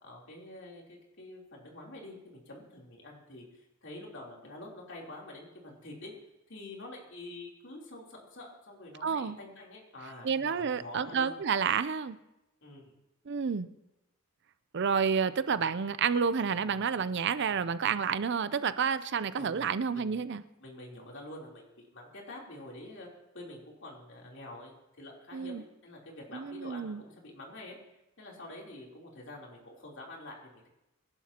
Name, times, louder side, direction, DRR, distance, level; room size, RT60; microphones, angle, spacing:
voice 1, 0.0-6.1 6.5-11.4 12.6-12.9 19.4-20.2 20.6-23.1 23.3-27.8 28.2-30.7, left 1 dB, 60° left, -2 dB, 3.5 m, -47 dB
voice 2, 9.0-9.4 10.2-12.2 13.3-13.7 14.7-20.4 25.3-25.6 26.3-27.0, right 6 dB, 55° right, 14 dB, 0.5 m, -30 dB
25.5 x 11.5 x 2.9 m, 0.93 s
head